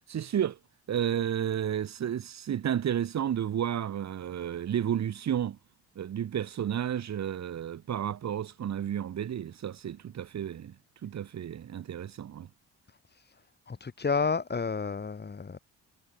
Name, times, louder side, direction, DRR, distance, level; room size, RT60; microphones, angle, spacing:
voice 1, 0.1-0.6 0.9-5.6 6.0-10.7 11.0-12.5, right 9 dB, 65° right, 7.5 m, -32 dB
voice 2, 13.7-15.6, left 5 dB, 35° left, 7.9 m, -31 dB
cardioid pair, 90°, 30 cm